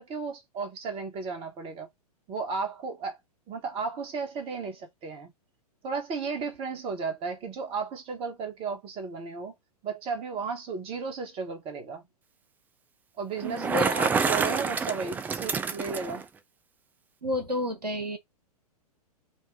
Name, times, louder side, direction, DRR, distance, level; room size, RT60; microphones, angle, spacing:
voice 1, 0.0-1.9 2.3-3.2 3.5-5.3 5.8-9.5 9.8-12.0 13.2-16.3, right 4 dB, 25° right, 1.5 m, -34 dB
Bicycle, 13.4-16.2, right 5 dB, 10° right, 0.3 m, -28 dB
voice 2, 13.4-13.9 17.2-18.2, left 1 dB, 85° right, 1.3 m, -30 dB
4.6 x 2.5 x 4.6 m
figure-of-eight pair, 105°, 20 cm